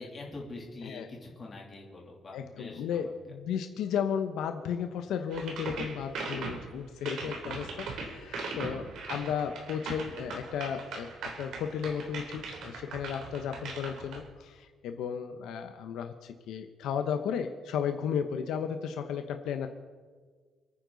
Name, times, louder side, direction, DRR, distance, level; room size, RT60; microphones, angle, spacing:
voice 1, 0.0-3.1, left 2 dB, 25° left, -2 dB, 3.2 m, -44 dB
voice 2, 2.3-11.1 11.4-19.7, left 7 dB, 75° left, 6 dB, 1.0 m, -34 dB
sound 1, 5.3-14.2, right 3 dB, 65° right, 3.6 m, -40 dB
29.0 x 9.8 x 4.1 m, 1.5 s
cardioid pair, 175°, 0 cm